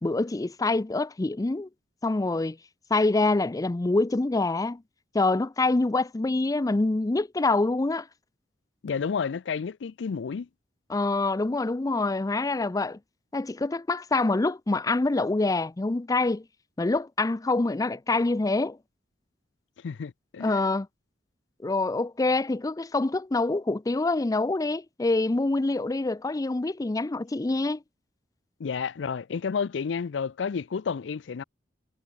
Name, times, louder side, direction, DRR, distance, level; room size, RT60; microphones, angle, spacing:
voice 1, 0.0-1.7 2.0-2.6 2.9-4.8 5.1-8.1 10.9-13.0 13.3-16.4 16.8-18.8 20.4-20.9 21.6-27.8, left 2 dB, 20° left, 0.4 m, -25 dB
voice 2, 8.8-10.5 19.8-20.6 28.6-31.4, left 6 dB, 75° left, 0.4 m, -31 dB
head